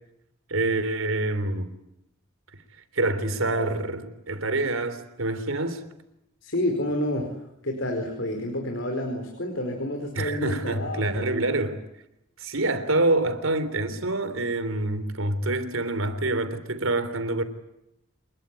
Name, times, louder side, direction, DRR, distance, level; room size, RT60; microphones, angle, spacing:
voice 1, 0.5-1.7 2.9-5.8 10.2-11.8 12.4-17.4, right 2 dB, 85° right, 3.5 m, -26 dB
voice 2, 6.4-7.3 7.6-11.3, left 1 dB, 70° left, 4.8 m, -29 dB
27.5 x 21.5 x 9.7 m
head